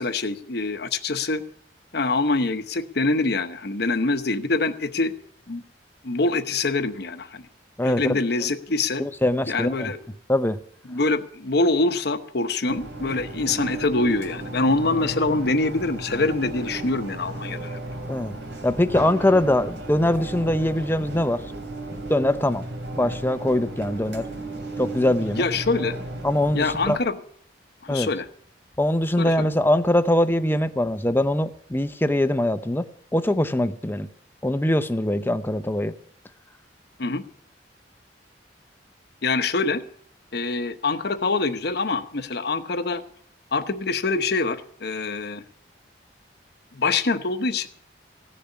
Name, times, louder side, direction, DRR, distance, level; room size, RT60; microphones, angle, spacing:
voice 1, 0.0-1.4 1.9-5.1 5.5-5.6 6.0-7.5 7.8-9.0 9.5-10.0 10.9-17.8 25.2-26.0 26.5-27.2 27.8-28.3 29.2-29.5 37.0-37.2 39.2-39.8 40.3-43.0 43.5-45.4 46.7-47.7, left 3 dB, 60° left, 1.0 m, -25 dB
voice 2, 7.8-8.2 9.0-9.9 10.3-10.6 18.1-18.4 18.6-21.4 22.1-22.6 23.0-24.3 24.8-25.4 26.2-27.0 27.9-28.1 28.8-32.9 33.1-34.1 34.4-35.9, left 1 dB, 10° left, 0.6 m, -22 dB
sound 1, 12.7-27.0, right 2 dB, 80° right, 2.8 m, -35 dB
16.0 x 6.8 x 9.7 m
head